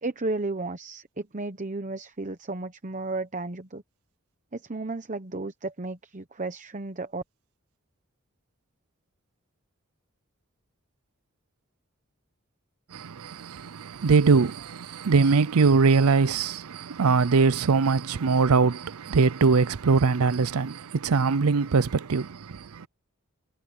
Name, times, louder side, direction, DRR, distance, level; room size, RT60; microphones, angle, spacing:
voice 1, 0.0-3.8 4.5-7.2, right 2 dB, 35° right, 1.0 m, -33 dB
voice 2, 12.9-22.9, right 4 dB, 90° right, 0.6 m, -22 dB
head